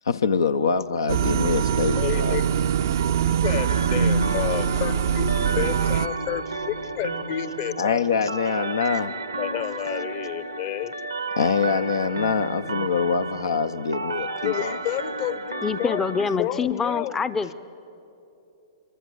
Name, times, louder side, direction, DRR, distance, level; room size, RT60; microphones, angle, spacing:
voice 1, 0.1-2.4 7.8-9.1 11.4-14.8, left 5 dB, 75° left, 0.6 m, -24 dB
sound 1, 1.1-6.1, right 8 dB, 60° right, 0.6 m, -23 dB
voice 2, 2.0-8.3 8.6-8.8 9.4-10.9 14.4-17.1, left 12 dB, 45° left, 1.0 m, -31 dB
sound 2, 3.4-16.4, right 3 dB, 85° right, 1.1 m, -33 dB
voice 3, 15.6-17.5, left 5 dB, 15° left, 0.6 m, -25 dB
24.5 x 22.5 x 7.8 m
figure-of-eight pair, 110°, 2 cm